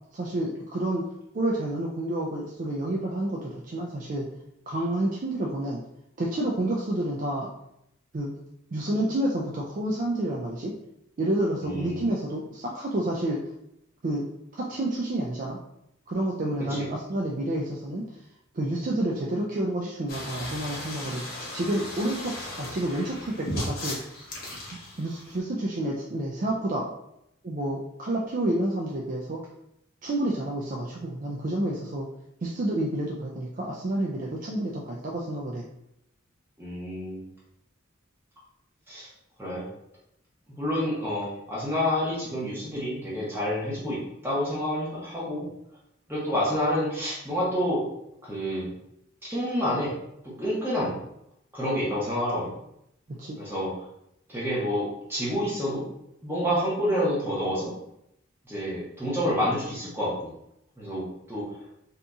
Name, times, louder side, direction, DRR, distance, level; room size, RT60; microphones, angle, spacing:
voice 1, 0.1-1.1 1.3-4.3 4.7-5.8 6.2-7.5 8.1-8.3 8.7-10.7 11.2-13.4 14.0-14.2 14.5-15.6 16.1-18.1 18.5-21.2 21.5-24.0 25.0-26.9 27.4-29.4 30.0-32.1 32.4-35.6 53.2-53.4, right 1 dB, 40° right, -3 dB, 0.4 m, -29 dB
voice 2, 11.6-12.0 16.7-16.9 36.6-37.2 38.9-39.1 39.4-39.7 40.6-45.4 46.1-47.8 48.2-48.7 49.2-49.9 50.4-50.9 51.5-52.5 53.4-53.7 54.3-55.8 56.2-57.7 58.5-60.3 60.8-61.4, equal, 10° right, -7 dB, 1.1 m, -28 dB
sound 1, 20.1-25.4, left 1 dB, 45° left, 0.8 m, -36 dB
2.8 x 2.6 x 3.5 m, 0.79 s
head